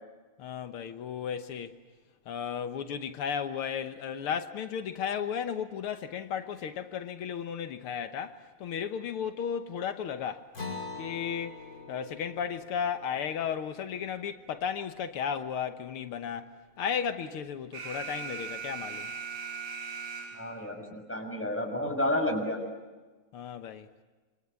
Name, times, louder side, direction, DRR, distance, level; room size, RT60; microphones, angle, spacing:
voice 1, 0.4-1.7 2.3-10.5 11.0-11.6 11.9-16.5 16.8-19.1 23.3-23.9, left 7 dB, 80° left, 2.0 m, -34 dB
Acoustic guitar, 10.5-15.4, left 3 dB, 45° left, 6.5 m, -45 dB
Alarm, 17.7-20.7, right 5 dB, 75° right, 5.3 m, -39 dB
voice 2, 20.3-22.6, left 1 dB, 5° left, 6.1 m, -31 dB
26.5 x 26.5 x 8.4 m
omnidirectional pair, 2.4 m